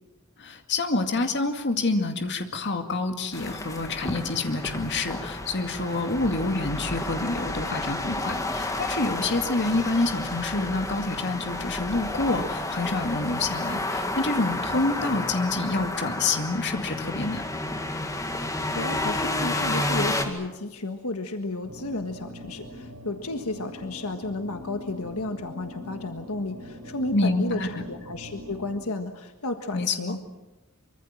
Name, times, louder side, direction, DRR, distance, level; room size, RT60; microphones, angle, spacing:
voice 1, 0.4-17.4 27.1-27.8 29.7-30.2, left 3 dB, 55° left, 6 dB, 2.2 m, -27 dB
sound 1, 3.3-20.3, left 2 dB, 15° left, 2.1 m, -31 dB
voice 2, 18.4-30.2, left 2 dB, 75° left, 6 dB, 1.6 m, -33 dB
sound 2, 21.6-28.8, equal, 80° right, 5.9 m, -43 dB
24.5 x 24.5 x 7.5 m, 1.0 s
head